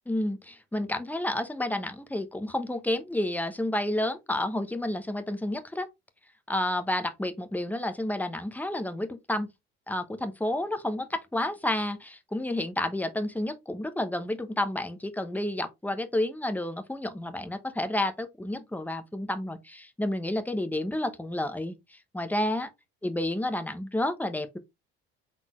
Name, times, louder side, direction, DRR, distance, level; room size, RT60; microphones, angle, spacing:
voice 1, 0.1-5.9 6.5-9.5 9.9-22.7 23.0-24.6, left 1 dB, 5° left, 1.0 m, -30 dB
4.3 x 3.9 x 3.1 m
hypercardioid pair, 60°, 32 cm